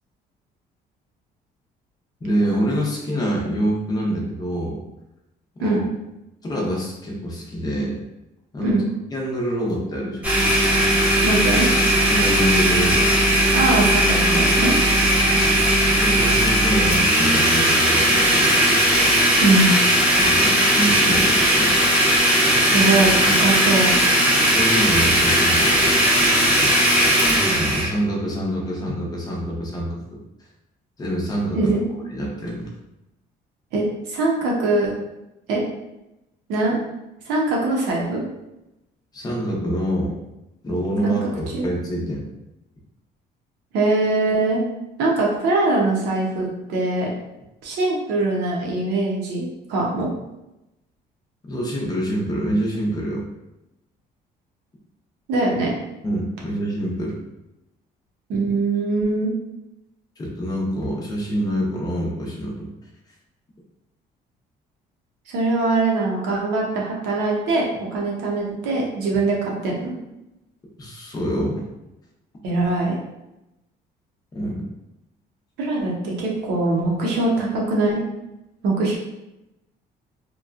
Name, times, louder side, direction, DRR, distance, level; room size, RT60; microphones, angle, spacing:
voice 1, 2.2-4.8 5.6-5.9 6.4-8.0 8.5-8.7 9.1-10.3 12.1-13.1 15.0-15.1 16.0-18.4 20.1-21.7 22.7-22.8 24.5-26.0 27.5-30.0 31.0-31.8 32.1-32.7 39.1-40.1 40.6-42.2 51.5-53.2 56.0-57.2 60.2-62.7 70.8-71.6 74.3-74.7, equal, 25° left, -3 dB, 0.7 m, -26 dB
Domestic sounds home sounds, 10.2-27.9, equal, 10° right, 0.9 m, -18 dB
voice 2, 11.2-11.7 13.5-14.7 19.4-19.7 22.6-23.9 31.5-31.8 33.7-33.8 34.1-34.9 35.5-35.6 36.5-36.8 37.3-38.2 41.0-41.1 41.5-41.7 43.7-44.6 45.0-47.1 47.6-50.1 55.3-55.7 58.3-59.3 65.3-67.6 67.9-69.9 72.4-73.0 75.6-78.0 78.6-79.0, right 2 dB, 90° right, -2 dB, 0.8 m, -22 dB
2.9 x 2.2 x 2.4 m, 0.93 s
cardioid pair, 110°, 17 cm